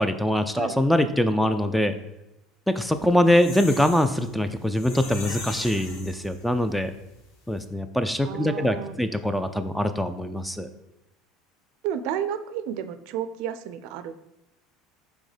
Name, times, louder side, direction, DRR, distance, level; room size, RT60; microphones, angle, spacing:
voice 1, 0.0-1.9 2.7-6.9 7.5-10.7, left 1 dB, ahead, 9 dB, 0.3 m, -23 dB
sound 1, 2.8-6.7 7.1-7.2 7.5-7.6, left 3 dB, 75° left, 2.0 m, -39 dB
voice 2, 8.3-8.9 11.8-14.2, right 9 dB, 65° right, 11 dB, 0.4 m, -31 dB
6.3 x 3.5 x 5.0 m, 0.92 s
cardioid pair, 150°, 0 cm